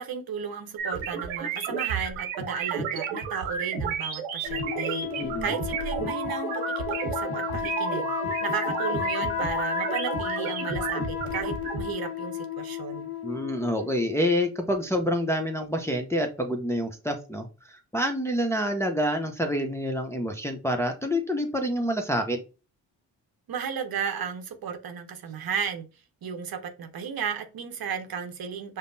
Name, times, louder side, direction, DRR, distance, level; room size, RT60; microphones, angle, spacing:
voice 1, 0.0-8.1 8.4-13.1 23.5-25.9 26.2-28.8, right 7 dB, 50° right, 0.8 m, -34 dB
sound 1, 0.8-11.8, right 6 dB, 90° right, 0.9 m, -32 dB
sound 2, 4.4-14.2, left 7 dB, 30° left, 1.0 m, -33 dB
voice 2, 5.2-5.5 13.2-22.4, equal, 5° left, 0.6 m, -27 dB
5.1 x 2.1 x 2.6 m
supercardioid pair, 55°, 47 cm